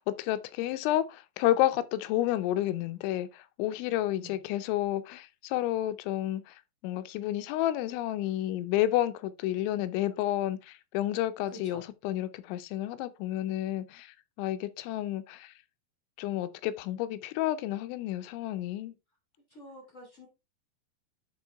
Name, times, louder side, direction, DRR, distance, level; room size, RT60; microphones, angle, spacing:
voice 1, 0.0-15.5 16.2-18.9, left 14 dB, 90° left, 3.0 m, -30 dB
voice 2, 11.5-11.8 19.5-20.3, equal, 60° left, 0.7 m, -48 dB
11.0 x 3.8 x 3.4 m
omnidirectional pair, 5.2 m